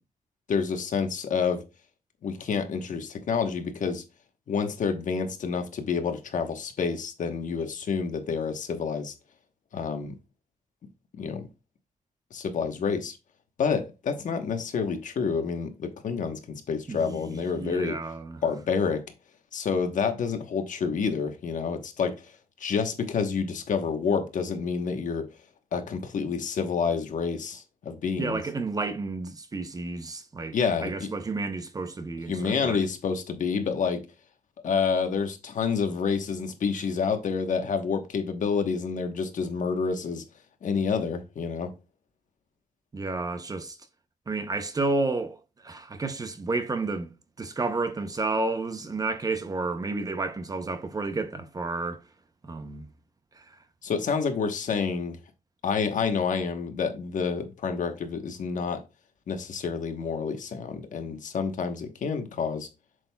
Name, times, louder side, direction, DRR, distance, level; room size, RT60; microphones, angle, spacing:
voice 1, 0.5-1.6 2.2-4.0 4.5-9.1 9.7-10.1 11.2-11.5 12.3-13.2 13.6-17.9 18.4-19.0 19.5-22.3 22.6-25.3 25.7-28.4 30.5-31.1 32.3-34.0 34.6-40.2 40.6-41.7 53.8-55.2 55.6-58.8 59.3-62.7, left 5 dB, 60° left, 1.2 m, -28 dB
voice 2, 16.9-18.4 28.2-32.8 42.9-43.8 44.3-47.1 47.4-52.0 52.4-52.9 53.3-53.6, right 3 dB, 25° right, 0.7 m, -31 dB
7.7 x 6.4 x 2.3 m
wide cardioid pair, 155°, 15 cm